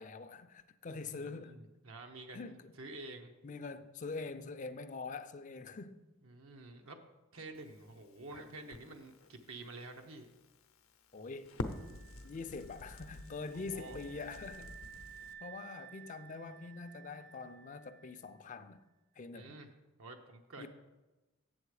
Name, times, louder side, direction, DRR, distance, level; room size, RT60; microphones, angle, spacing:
voice 1, 0.0-1.6 2.3-2.7 3.4-6.0 11.1-11.5 12.2-14.8 15.4-18.8 19.2-19.5 20.6-20.7, left 4 dB, 35° left, 0.4 m, -44 dB
voice 2, 1.2-3.3 6.2-7.0 7.3-10.3 13.5-14.0 19.3-19.7 20.0-20.7, right 2 dB, 80° right, 0.9 m, -49 dB
Crackle, 7.5-15.3, left 2 dB, 75° left, 0.7 m, -48 dB
sound 1, 11.6-18.4, right 9 dB, 50° right, 0.8 m, -55 dB
7.8 x 7.3 x 4.8 m
head